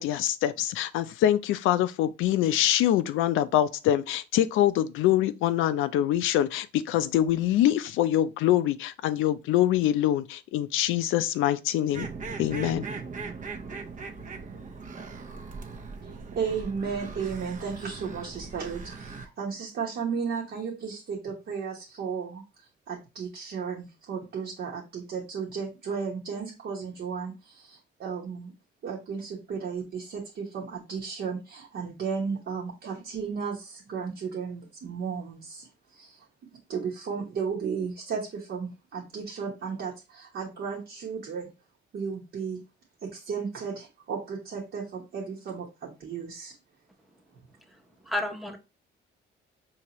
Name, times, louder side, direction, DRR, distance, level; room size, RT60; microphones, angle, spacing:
voice 1, 0.0-12.1 12.4-12.9, left 12 dB, 85° left, 0.4 m, -24 dB
sound 1, 11.9-19.3, right 4 dB, 40° right, 0.6 m, -39 dB
voice 2, 16.0-22.4 22.9-28.5 28.8-36.2 36.7-41.5 41.9-42.6 43.0-46.5, right 6 dB, 60° right, 1.1 m, -34 dB
voice 3, 47.7-48.6, left 1 dB, ahead, 0.8 m, -33 dB
4.6 x 2.8 x 2.9 m
cardioid pair, 90°, 20 cm